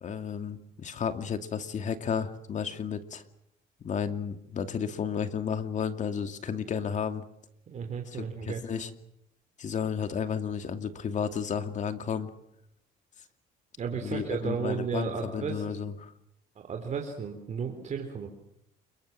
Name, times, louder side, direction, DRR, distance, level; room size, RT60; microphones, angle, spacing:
voice 1, 0.0-3.2 3.8-7.2 8.1-8.9 9.6-12.3 14.0-16.1, left 7 dB, 45° left, 8 dB, 2.5 m, -32 dB
voice 2, 7.7-8.6 13.8-15.8 16.6-18.3, right 6 dB, 45° right, 3 dB, 3.8 m, -34 dB
28.5 x 23.0 x 7.6 m, 0.77 s
cardioid pair, 110°, 17 cm